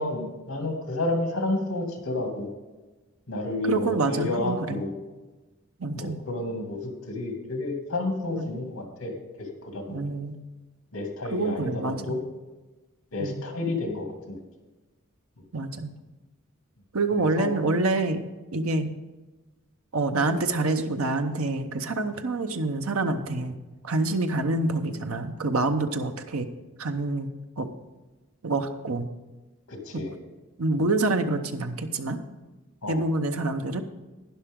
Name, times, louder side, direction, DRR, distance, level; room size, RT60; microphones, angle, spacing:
voice 1, 0.0-2.5 3.3-4.9 5.9-6.8 7.1-10.1 10.9-12.2 13.1-14.4 17.2-17.5 29.7-30.1 30.8-30.9 32.8-33.0, left 2 dB, 80° left, 3 dB, 2.3 m, -30 dB
voice 2, 3.7-4.8 5.8-6.2 8.3-8.4 9.9-10.4 11.3-12.2 13.2-13.4 15.5-15.9 16.9-18.2 18.5-18.9 19.9-23.5 23.8-26.5 26.8-27.3 27.6-27.7 28.4-29.1 30.6-32.2 32.9-33.8, right 2 dB, 80° right, 7 dB, 0.9 m, -26 dB
11.5 x 10.0 x 3.7 m, 1.2 s
head